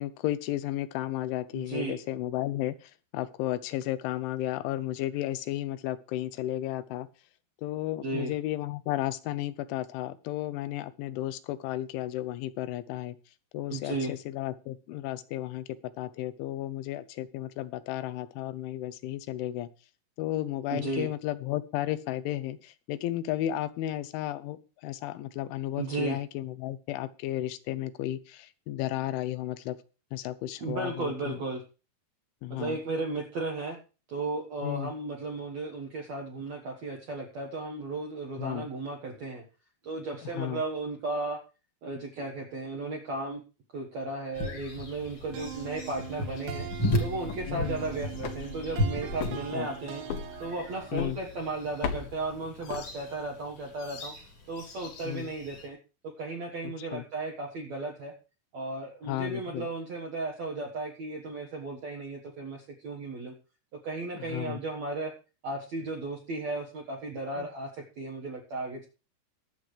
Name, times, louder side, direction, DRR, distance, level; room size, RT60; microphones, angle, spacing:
voice 1, 0.0-7.1 7.6-13.2 13.5-15.7 16.0-19.7 20.2-29.8 30.1-31.4 32.4-32.8 34.6-34.9 38.4-38.7 40.4-40.6 47.5-47.8 49.5-49.7 50.9-51.2 55.0-55.3 56.6-57.0 59.1-59.7 64.3-64.6 67.4-67.5, left 14 dB, 85° left, 14 dB, 3.2 m, -33 dB
voice 2, 1.5-1.9 8.0-8.3 13.7-14.1 20.7-21.1 25.8-26.2 30.6-31.6 32.5-33.8 34.1-39.4 39.8-41.4 41.8-43.4 43.7-46.7 47.0-50.0 50.4-54.1 54.5-55.8 56.2-58.1 58.5-63.3 63.8-65.1 65.4-68.9, right 3 dB, 70° right, 0 dB, 1.7 m, -35 dB
sound 1, 44.3-55.7, left 1 dB, 40° left, 1.9 m, -36 dB
sound 2, 45.3-51.1, right 11 dB, 85° right, 3.2 m, -43 dB
sound 3, 47.1-53.4, left 6 dB, 70° left, 2.6 m, -40 dB
22.5 x 7.8 x 3.3 m, 0.34 s
omnidirectional pair, 5.3 m